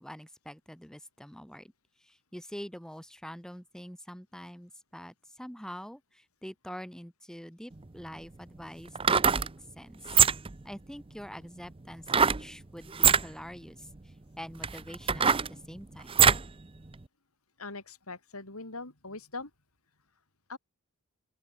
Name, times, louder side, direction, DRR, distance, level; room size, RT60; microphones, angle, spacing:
voice 1, 0.0-1.7 2.0-9.5 9.8-10.2 10.6-13.9 14.4-16.2, equal, 5° left, 1.8 m, -45 dB
sound 1, 7.7-7.8 8.9-9.5 10.0-10.6 12.1-12.4 12.9-13.2 14.0-14.1 14.6-16.5 16.9-17.0, right 7 dB, 25° right, 0.7 m, -23 dB
voice 2, 17.6-19.5 20.5-20.6, left 3 dB, 85° left, 6.0 m, -41 dB
open air
head